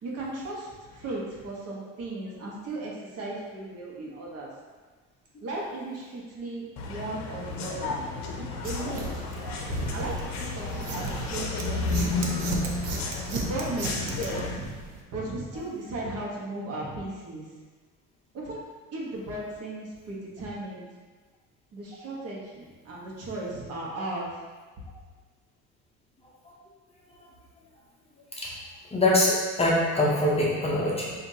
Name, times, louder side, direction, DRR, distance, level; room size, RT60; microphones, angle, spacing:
voice 1, 0.0-4.5 5.4-8.0 8.4-9.2 9.9-12.6 13.3-14.7 15.1-17.5 18.3-18.6 18.9-20.9 21.7-24.3, right 2 dB, 50° right, -4 dB, 1.1 m, -36 dB
sound 1, 6.8-14.6, left 3 dB, 60° left, 0.6 m, -32 dB
sound 2, 8.6-15.0, right 3 dB, 70° right, 0.7 m, -36 dB
voice 2, 28.9-31.1, left 1 dB, 20° left, -4 dB, 0.6 m, -23 dB
5.7 x 2.5 x 2.7 m, 1.4 s
cardioid pair, 130°, 31 cm